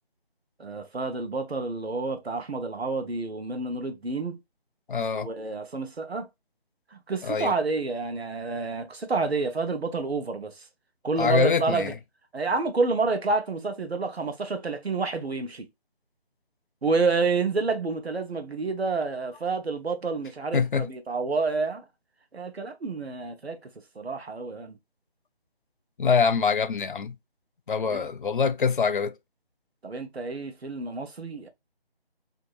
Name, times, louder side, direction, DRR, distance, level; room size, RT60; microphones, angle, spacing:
voice 1, 0.6-4.4 5.1-6.3 6.9-10.7 11.0-11.9 12.3-15.7 16.8-21.8 22.3-24.8 27.8-28.1 29.8-31.5, right 3 dB, 85° right, 0.9 m, -29 dB
voice 2, 4.9-5.3 7.2-7.5 11.2-11.9 20.5-20.9 26.0-27.2 27.7-29.1, left 5 dB, 55° left, 0.4 m, -24 dB
2.8 x 2.7 x 2.4 m
figure-of-eight pair, 160°, 31 cm